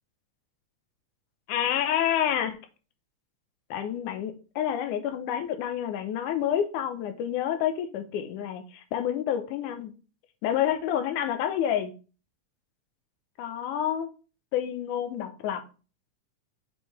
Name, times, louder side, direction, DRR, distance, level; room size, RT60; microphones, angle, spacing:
voice 1, 1.5-2.6 3.7-9.9 10.4-11.9 13.4-14.1 14.5-15.6, left 10 dB, 85° left, 2.3 m, -28 dB
7.3 x 4.7 x 3.2 m
omnidirectional pair, 3.6 m